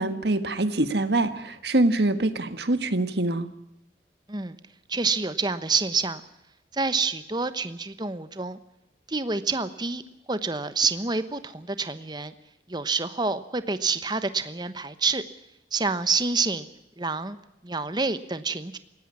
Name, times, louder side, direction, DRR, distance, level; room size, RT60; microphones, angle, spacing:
voice 1, 0.0-3.5, right 2 dB, 60° right, 10 dB, 1.7 m, -24 dB
voice 2, 4.9-6.2 6.7-8.6 9.1-10.0 10.3-12.3 12.7-15.2 15.7-16.7 17.0-17.4 17.6-18.8, right 4 dB, 25° right, 12 dB, 1.1 m, -27 dB
19.5 x 16.5 x 9.6 m, 0.86 s
head